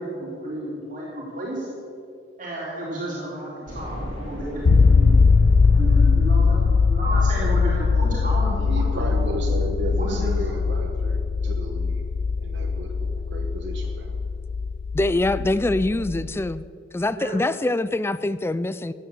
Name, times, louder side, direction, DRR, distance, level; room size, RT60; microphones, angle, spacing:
voice 1, 0.0-1.7 2.4-5.1 5.7-9.3 10.0-10.5 17.1-17.3, right 1 dB, 45° right, -6 dB, 3.3 m, -32 dB
sound 1, 3.7-12.6 13.0-13.1 13.5-13.6 14.8-14.9 15.2-15.3, equal, 30° left, 3.8 m, -40 dB
sound 2, 4.7-16.6, left 4 dB, 70° left, 0.5 m, -21 dB
voice 2, 8.5-12.0 12.4-14.2, right 1 dB, 65° right, 1 dB, 1.3 m, -34 dB
voice 3, 14.9-16.6 16.9-18.9, left 2 dB, 15° left, 15 dB, 0.3 m, -24 dB
14.5 x 8.7 x 8.2 m, 2.4 s
head